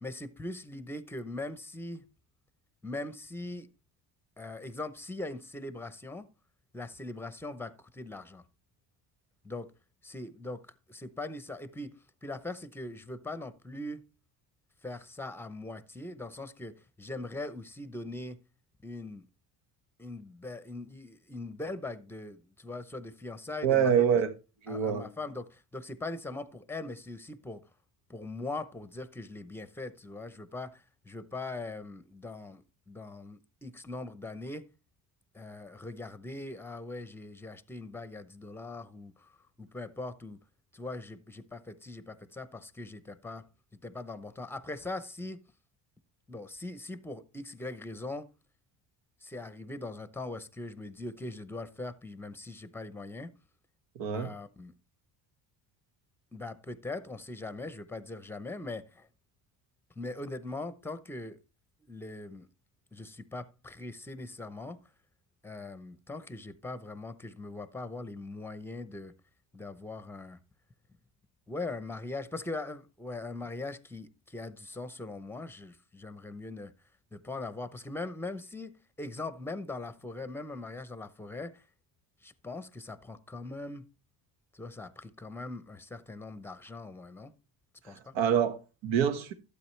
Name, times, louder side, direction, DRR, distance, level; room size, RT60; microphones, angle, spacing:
voice 1, 0.0-2.0 2.8-3.7 4.4-6.3 6.7-8.4 9.4-9.7 10.0-10.6 10.9-12.0 12.2-14.0 14.8-18.4 18.8-19.2 20.0-24.0 24.7-27.6 28.1-34.7 35.3-39.3 39.6-40.4 40.7-43.5 43.8-45.4 46.3-48.3 49.2-53.3 54.1-54.7 56.3-59.1 60.0-61.4 61.8-62.5 62.9-64.8 65.4-69.1 69.5-70.4 71.5-76.7 77.1-81.6 82.2-83.8 84.5-87.3 87.8-88.1, left 2 dB, 5° left, 0.7 m, -41 dB
voice 2, 23.6-24.3 24.6-25.1 54.0-54.3 88.1-89.3, right 8 dB, 75° right, 1.5 m, -26 dB
12.5 x 8.1 x 3.2 m
cardioid pair, 110°, 45 cm